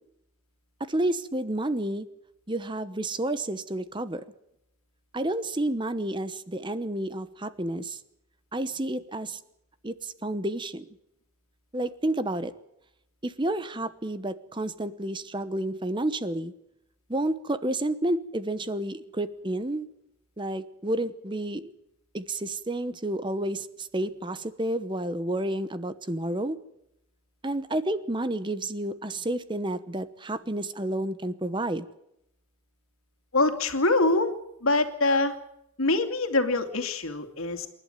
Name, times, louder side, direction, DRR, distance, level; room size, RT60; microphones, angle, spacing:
voice 1, 0.8-2.1 2.5-4.2 5.1-8.0 8.5-9.4 9.8-10.8 11.7-12.5 13.2-16.5 17.1-19.9 20.4-21.7 22.1-26.6 27.4-31.9, right 1 dB, 20° right, 13 dB, 1.0 m, -30 dB
voice 2, 33.3-34.3 34.6-35.4 35.8-37.7, left 2 dB, 75° left, 7 dB, 2.6 m, -24 dB
27.5 x 12.0 x 9.2 m, 0.83 s
head